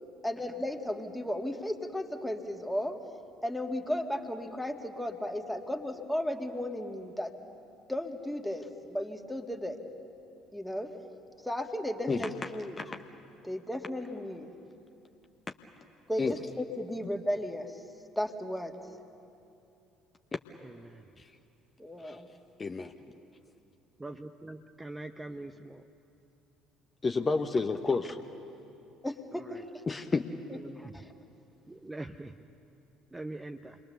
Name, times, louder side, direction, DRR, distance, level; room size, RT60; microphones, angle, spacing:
voice 1, 0.2-3.0 3.4-7.3 7.9-9.8 10.5-10.9 11.4-12.8 13.4-14.5 16.1-17.8 18.2-18.7 21.8-22.2 29.0-29.6 30.8-31.1, left 1 dB, ahead, 3 dB, 2.0 m, -35 dB
voice 2, 20.6-21.0 24.0-25.9 29.3-29.6 30.6-31.0 31.7-32.4 33.1-33.8, right 2 dB, 15° right, 7 dB, 0.8 m, -43 dB
voice 3, 22.6-22.9 27.0-28.2 29.9-30.3, left 4 dB, 25° left, 6 dB, 1.0 m, -30 dB
28.5 x 22.0 x 6.8 m, 2.7 s
figure-of-eight pair, 55°, 0 cm